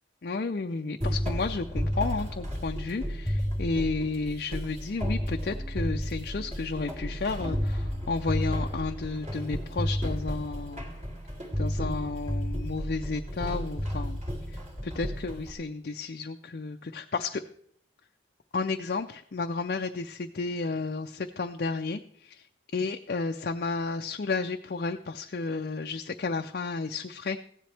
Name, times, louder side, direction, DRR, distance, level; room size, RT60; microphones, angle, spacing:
voice 1, 0.2-10.9 11.6-14.2 14.8-17.4 18.5-22.4 22.7-27.4, left 3 dB, 50° left, 5 dB, 0.5 m, -32 dB
sound 1, 1.0-15.5, equal, 35° right, 2.5 m, -32 dB
15.5 x 10.5 x 3.4 m, 0.63 s
head